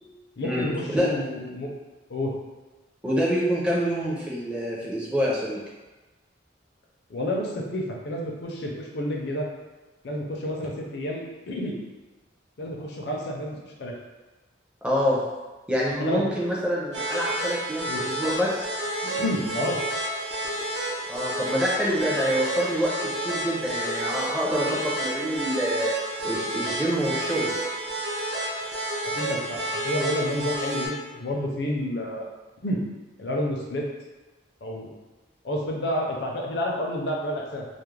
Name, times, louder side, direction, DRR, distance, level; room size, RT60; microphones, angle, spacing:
voice 1, 0.4-1.7 2.1-2.3 7.1-9.5 10.0-11.8 12.6-13.9 16.0-16.2 17.9-18.0 19.0-19.8 29.0-32.3 32.6-32.8 33.2-33.8 34.6-34.9 35.4-37.7, left 1 dB, 60° left, -1 dB, 0.5 m, -30 dB
voice 2, 3.0-5.6 14.8-15.2 15.7-18.7 21.1-25.9 26.2-27.5, equal, 5° right, -6 dB, 0.4 m, -26 dB
sound 1, 16.9-30.9, right 1 dB, 65° right, 0.6 m, -30 dB
2.3 x 2.0 x 3.1 m, 1.2 s
head